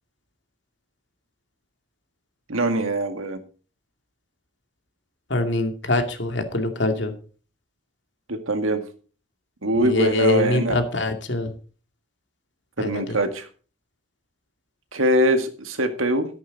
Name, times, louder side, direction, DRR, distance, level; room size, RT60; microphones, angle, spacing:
voice 1, 2.5-3.4 8.3-8.8 9.6-10.8 12.8-13.5 14.9-16.3, right 1 dB, 90° right, 7 dB, 2.0 m, -22 dB
voice 2, 5.3-7.1 9.8-11.5 12.8-13.2, left 2 dB, 60° left, 5 dB, 2.5 m, -24 dB
13.5 x 11.0 x 4.1 m, 0.38 s
head